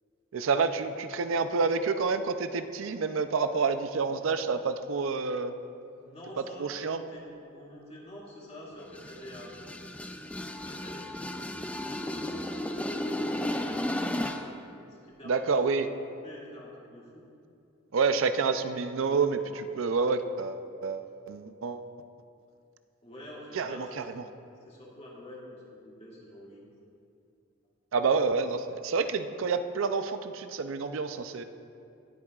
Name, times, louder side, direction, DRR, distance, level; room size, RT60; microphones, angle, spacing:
voice 1, 0.3-5.5 6.6-7.0 15.3-15.9 17.9-21.9 23.5-24.2 27.9-31.4, right 4 dB, 70° right, 9 dB, 0.5 m, -28 dB
voice 2, 6.0-9.6 10.6-11.0 11.7-14.5 15.0-15.4 15.7-17.2 23.0-24.2 24.7-26.7, equal, 30° left, -5 dB, 2.2 m, -46 dB
sound 1, 8.8-14.6, left 1 dB, 5° left, 0.3 m, -34 dB
18.5 x 8.4 x 2.4 m, 2.6 s
head